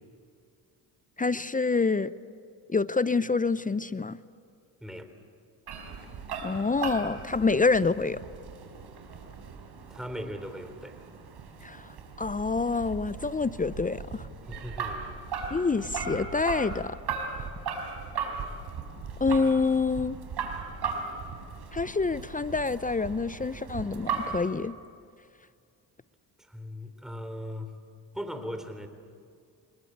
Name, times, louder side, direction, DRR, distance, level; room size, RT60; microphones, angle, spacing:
voice 1, 1.2-2.1 2.7-4.2 6.4-8.2 11.6-11.9 12.2-14.3 15.5-17.0 19.2-20.2 21.7-24.7, left 4 dB, 20° left, 16 dB, 0.7 m, -27 dB
voice 2, 4.8-5.1 9.9-11.0 14.5-15.2 26.4-27.7 28.1-28.9, equal, ahead, 7 dB, 3.5 m, -38 dB
sound 1, 5.7-24.5, right 5 dB, 60° right, 4.5 m, -37 dB
25.5 x 22.0 x 8.1 m, 2.2 s
supercardioid pair, 65°, 44 cm